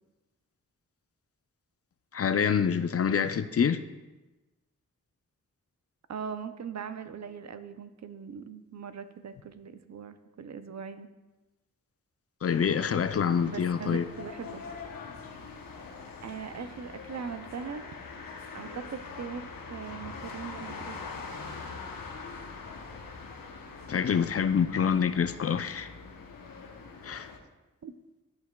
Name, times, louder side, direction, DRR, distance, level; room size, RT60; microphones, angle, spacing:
voice 1, 2.1-3.8 12.4-14.0 23.9-25.9 27.0-27.3, left 7 dB, 45° left, 11 dB, 0.5 m, -26 dB
voice 2, 6.1-11.1 13.5-14.6 16.2-17.9 18.5-21.2 27.8-27.9, right 7 dB, 55° right, 11 dB, 0.6 m, -40 dB
sound 1, 12.5-27.4, left 4 dB, 80° left, 0.9 m, -43 dB
12.0 x 5.7 x 2.3 m, 1.1 s
cardioid pair, 45°, 34 cm